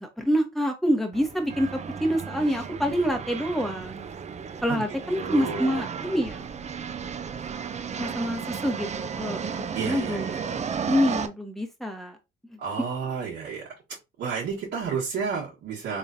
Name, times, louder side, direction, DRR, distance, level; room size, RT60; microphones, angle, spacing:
voice 1, 0.0-1.7 2.0-4.0 4.6-6.4 8.0-9.4 9.8-10.3 10.9-12.2, equal, ahead, 3 dB, 1.1 m, -26 dB
sound 1, 1.1-11.3, right 6 dB, 35° right, 0.5 m, -34 dB
voice 2, 5.2-6.0 9.7-10.4 12.6-13.6 14.2-16.0, right 6 dB, 80° right, -7 dB, 1.4 m, -31 dB
3.7 x 3.2 x 2.7 m, 0.24 s
cardioid pair, 90°, 20 cm